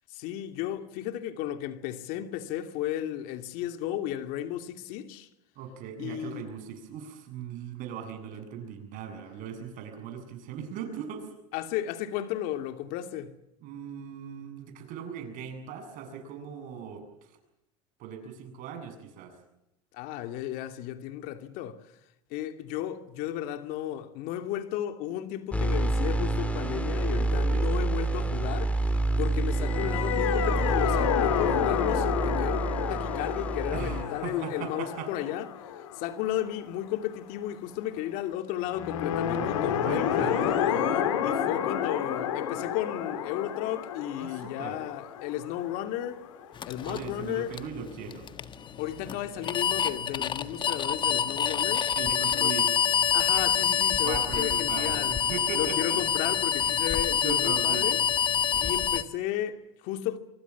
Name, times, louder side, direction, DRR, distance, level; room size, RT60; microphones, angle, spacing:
voice 1, 0.1-5.3 6.0-6.4 11.5-13.3 19.9-21.8 22.3-35.5 35.9-40.6 41.2-46.2 46.6-47.5 48.8-51.9 52.3-52.5 53.1-55.1 55.6-58.0 58.6-60.2, left 12 dB, 65° left, 2.6 m, -34 dB
voice 2, 5.5-11.3 13.6-17.4 18.0-19.4 27.5-27.7 33.7-35.1 39.8-40.6 44.2-44.8 46.9-48.3 51.9-52.7 54.0-56.0 56.6-56.7 57.1-57.9, right 8 dB, 55° right, 7.7 m, -39 dB
sound 1, 25.5-34.0, right 2 dB, 10° left, 4.3 m, -28 dB
sound 2, 29.5-36.8 38.7-46.4, left 9 dB, 90° left, 3.9 m, -30 dB
sound 3, 46.6-59.0, left 8 dB, 30° left, 1.5 m, -27 dB
24.5 x 24.5 x 7.3 m
supercardioid pair, 115°, 16 cm